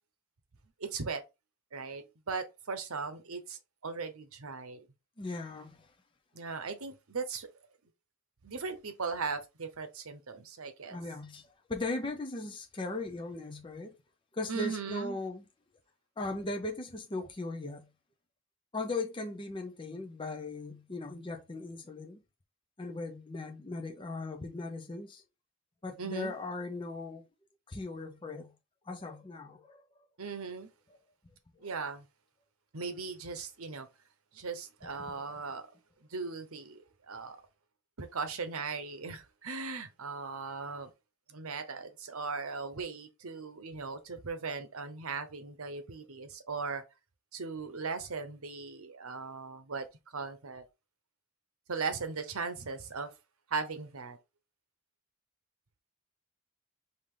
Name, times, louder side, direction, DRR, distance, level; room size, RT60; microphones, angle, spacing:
voice 1, 0.8-1.2 1.7-4.8 6.3-7.5 8.4-11.0 14.5-15.2 26.0-26.3 30.2-30.7 31.6-32.0 32.7-33.9 34.3-35.7 36.1-37.4 38.0-40.9 41.3-46.8 47.3-50.6 51.7-53.1 53.5-54.2, right 4 dB, 75° right, 0.9 m, -38 dB
voice 2, 5.2-5.9 10.9-13.9 14.3-15.5 16.2-17.9 18.7-22.2 22.8-25.2 25.8-27.3 27.7-28.5 28.9-29.8 34.8-35.4, left 2 dB, 25° left, 0.6 m, -38 dB
5.0 x 2.7 x 3.7 m
head